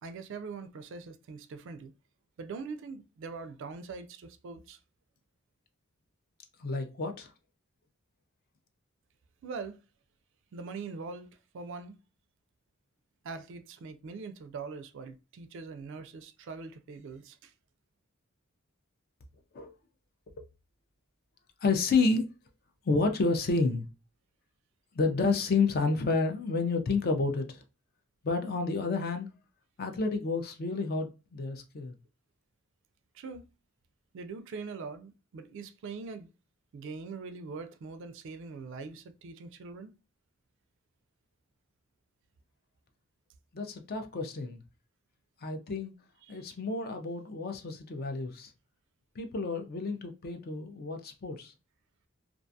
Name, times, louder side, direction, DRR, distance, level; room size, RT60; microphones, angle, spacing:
voice 1, 0.0-1.9 2.4-4.8 9.4-9.8 10.5-11.3 11.5-12.0 13.2-17.5 33.1-33.4 34.1-36.3 36.7-39.9 46.3-46.4, right 4 dB, 60° right, 0.3 m, -42 dB
voice 2, 6.6-7.3 19.5-19.7 21.6-22.3 22.9-23.8 24.9-27.6 28.2-29.3 29.8-32.0 43.5-44.6 45.4-45.9 46.3-48.5 49.2-51.5, left 3 dB, 45° left, 0.4 m, -30 dB
2.4 x 2.3 x 2.6 m
head